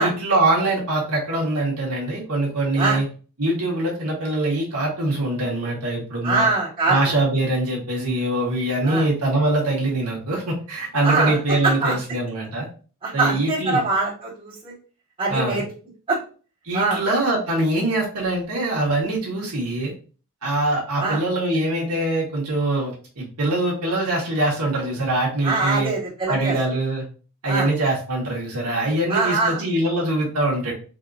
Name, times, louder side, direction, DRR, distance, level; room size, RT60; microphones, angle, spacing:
voice 1, 0.0-3.0 3.4-6.5 6.9-12.7 13.1-13.8 15.3-15.6 16.6-19.9 20.4-25.9 26.3-27.1 27.4-30.7, right 2 dB, 90° right, -3 dB, 1.3 m, -23 dB
voice 2, 6.2-7.0 8.8-9.1 11.0-11.4 11.6-11.9 13.0-14.7 15.2-15.6 16.1-16.2 16.7-17.0 21.0-21.2 25.4-26.5 27.4-27.7 29.1-29.6, right 3 dB, 25° right, -8 dB, 1.9 m, -23 dB
4.1 x 3.0 x 2.6 m, 0.38 s
head